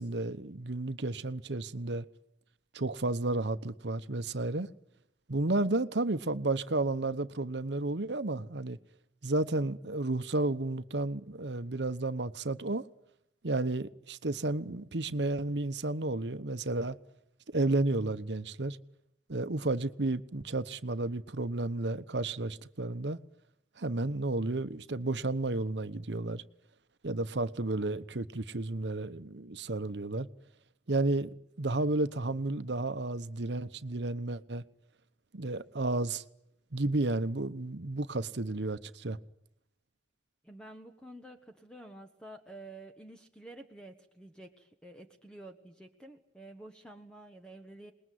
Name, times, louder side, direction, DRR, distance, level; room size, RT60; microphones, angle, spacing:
voice 1, 0.0-2.0 2.7-4.7 5.3-8.8 9.2-12.8 13.4-17.0 17.5-18.8 19.3-23.2 23.8-26.4 27.0-30.3 30.9-34.6 35.3-36.2 36.7-39.2, right 2 dB, 75° right, 1.0 m, -32 dB
voice 2, 40.4-47.9, right 1 dB, 5° left, 1.5 m, -50 dB
26.5 x 20.5 x 9.5 m
head